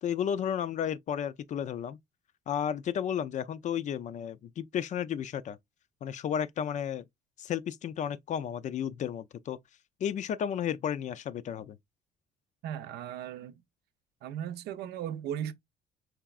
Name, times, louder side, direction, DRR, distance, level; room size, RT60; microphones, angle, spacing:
voice 1, 0.0-2.0 2.5-5.6 6.0-7.0 7.4-9.6 10.0-11.8, left 9 dB, 45° left, 0.4 m, -33 dB
voice 2, 12.6-13.6 14.2-15.5, right 10 dB, 75° right, 0.7 m, -37 dB
4.7 x 3.4 x 2.3 m
cardioid pair, 110°, 17 cm